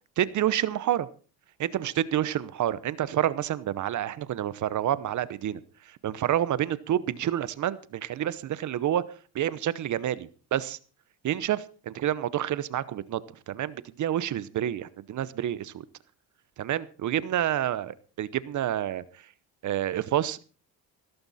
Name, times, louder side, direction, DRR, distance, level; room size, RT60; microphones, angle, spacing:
voice 1, 0.2-1.1 1.6-9.0 9.3-10.8 11.2-13.2 13.5-15.8 16.6-19.3 19.6-20.4, right 11 dB, 50° right, 18 dB, 0.9 m, -28 dB
16.0 x 14.0 x 4.2 m, 0.38 s
cardioid pair, 120°, 38 cm